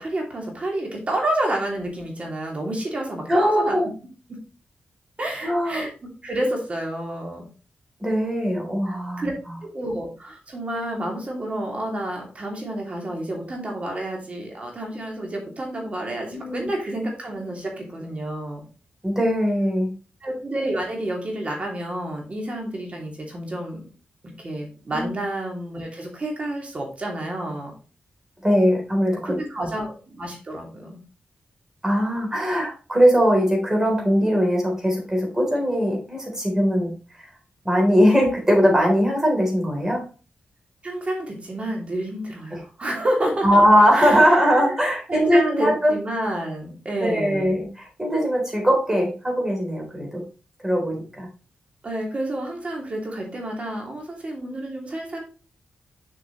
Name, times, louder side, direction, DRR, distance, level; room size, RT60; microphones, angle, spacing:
voice 1, 0.0-3.8 5.2-5.9 6.2-7.4 8.9-9.3 9.7-18.6 20.2-23.8 24.4-27.7 29.2-31.0 40.8-43.5 43.9-44.8 45.1-47.6 51.8-55.2, right 1 dB, 45° right, 0 dB, 2.7 m, -29 dB
voice 2, 3.3-3.9 5.4-5.9 8.0-9.3 16.3-16.7 19.0-19.9 24.9-25.1 28.4-29.7 31.8-36.9 37.2-37.3 37.7-40.0 42.5-42.6 43.4-45.9 47.0-50.2 50.6-51.3, equal, 20° right, 1 dB, 3.5 m, -20 dB
7.2 x 5.9 x 3.1 m, 0.36 s
cardioid pair, 70°, 3 cm